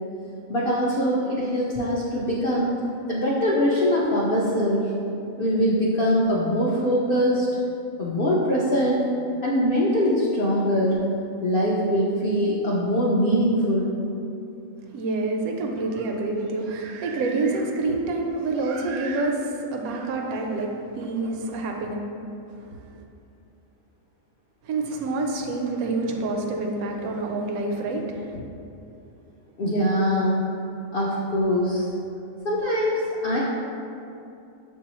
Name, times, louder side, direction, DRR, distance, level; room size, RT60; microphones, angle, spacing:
voice 1, 0.5-2.7 3.1-4.9 5.4-7.5 8.0-9.0 9.4-11.0 11.4-14.0 29.6-30.4 30.9-31.9 32.4-33.4, equal, 70° left, -6 dB, 0.5 m, -22 dB
voice 2, 14.9-22.0 22.7-22.8 24.6-28.4, right 3 dB, 90° right, 2 dB, 1.0 m, -27 dB
6.6 x 2.7 x 2.9 m, 2.7 s
omnidirectional pair, 1.5 m